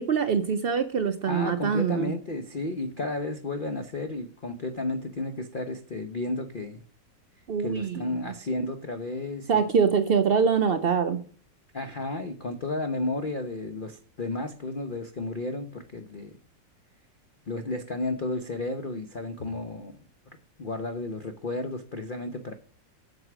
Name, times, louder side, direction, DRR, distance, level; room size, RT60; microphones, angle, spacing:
voice 1, 0.0-2.1 7.5-8.2 9.5-11.2, right 6 dB, 90° right, 0.5 m, -24 dB
voice 2, 1.3-6.8 7.6-9.7 11.7-16.3 17.5-20.0 20.6-22.5, left 2 dB, 40° left, 0.8 m, -32 dB
7.9 x 7.3 x 6.0 m
omnidirectional pair, 1.9 m